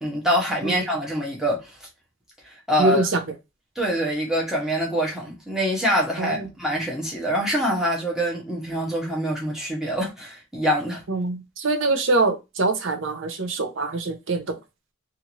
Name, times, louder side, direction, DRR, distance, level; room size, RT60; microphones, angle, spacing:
voice 1, 0.0-1.7 2.4-3.0 3.8-11.0, equal, ahead, 0.9 m, -25 dB
voice 2, 2.8-3.2 6.2-6.5 11.1-14.4, right 3 dB, 60° right, 0.6 m, -24 dB
2.7 x 2.4 x 2.9 m
head